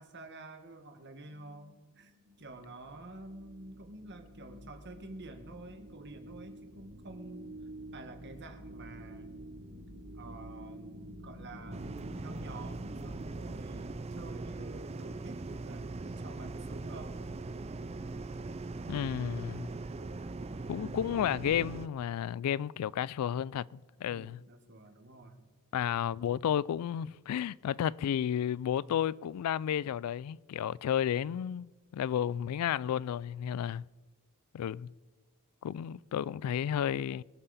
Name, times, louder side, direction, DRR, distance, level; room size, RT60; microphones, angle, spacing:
voice 1, 0.0-2.1 2.4-7.5 7.9-9.5 10.1-17.2 24.1-25.5, right 2 dB, 50° right, 1.5 m, -49 dB
sound 1, 1.7-14.0, right 1 dB, 80° right, 3.0 m, -49 dB
sound 2, 11.7-21.9, right 3 dB, 30° right, 0.4 m, -40 dB
voice 2, 18.9-19.7 20.7-24.4 25.7-33.9 34.5-34.9 35.6-37.2, left 9 dB, 80° left, 0.3 m, -32 dB
22.5 x 7.6 x 4.1 m
head